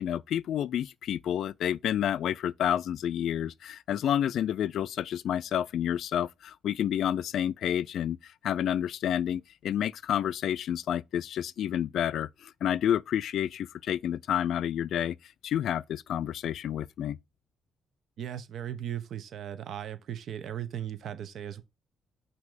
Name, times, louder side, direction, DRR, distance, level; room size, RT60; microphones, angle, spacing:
voice 1, 0.0-15.2 15.4-17.2, left 10 dB, 70° left, 0.3 m, -29 dB
voice 2, 18.2-21.6, right 10 dB, 70° right, 0.9 m, -37 dB
6.1 x 2.9 x 5.6 m
cardioid pair, 90°, 0 cm